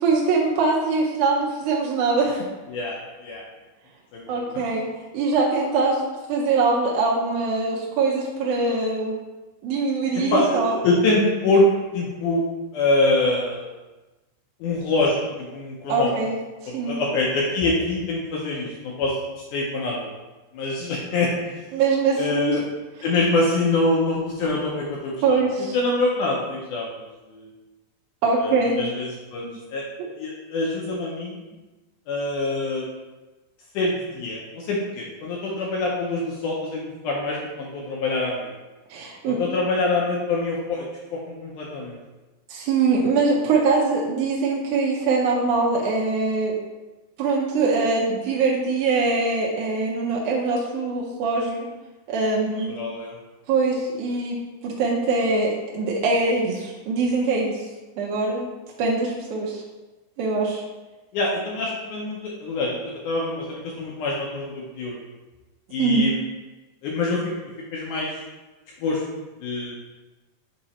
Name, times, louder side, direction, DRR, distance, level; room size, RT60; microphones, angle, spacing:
voice 1, 0.0-2.5 4.3-4.9 5.1-6.0 6.3-9.1 9.6-10.8 15.9-16.4 16.6-17.0 21.7-22.6 25.2-25.8 28.2-28.8 29.4-29.6 38.9-39.4 42.5-46.5 47.2-51.7 52.1-52.9 53.5-54.4 54.6-57.6 58.0-58.5 58.8-59.6 60.2-60.6 65.8-66.1, right 3 dB, 85° right, -4 dB, 1.8 m, -23 dB
voice 2, 2.7-3.4 4.1-4.6 10.3-11.7 11.9-12.4 12.7-13.7 14.6-16.1 16.7-19.1 19.5-20.1 20.5-21.6 22.2-22.6 23.0-25.4 25.7-26.9 27.3-27.5 28.4-29.9 30.2-31.4 32.1-32.9 33.7-38.5 39.3-42.0 52.7-53.2 61.1-65.0 65.7-66.2 66.8-67.3 67.7-68.2 68.8-69.0 69.4-69.8, left 2 dB, 80° left, -3 dB, 1.9 m, -25 dB
7.8 x 2.9 x 4.2 m, 1.1 s
omnidirectional pair, 4.4 m